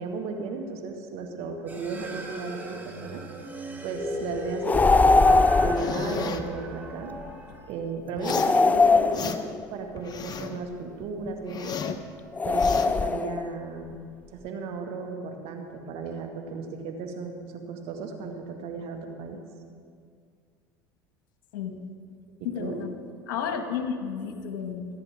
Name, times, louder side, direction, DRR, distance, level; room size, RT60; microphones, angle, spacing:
voice 1, 0.0-3.2 3.8-7.1 7.7-11.8 12.4-14.0 14.3-19.4 22.6-22.8, right 4 dB, 60° right, 4 dB, 2.2 m, -35 dB
sound 1, 1.7-7.6, right 1 dB, 15° right, 3.8 m, -37 dB
sound 2, 4.6-6.0 8.2-9.7 12.4-13.5, left 3 dB, 15° left, 0.4 m, -21 dB
sound 3, 5.8-6.4 8.2-8.6 8.9-9.6 10.0-10.6 11.0-12.0 12.4-12.9, left 6 dB, 35° left, 1.2 m, -34 dB
voice 2, 21.5-21.9 22.4-22.9 23.3-24.9, left 7 dB, 75° left, 5 dB, 2.0 m, -32 dB
28.0 x 10.5 x 3.8 m, 2.1 s
hypercardioid pair, 85°, 11 cm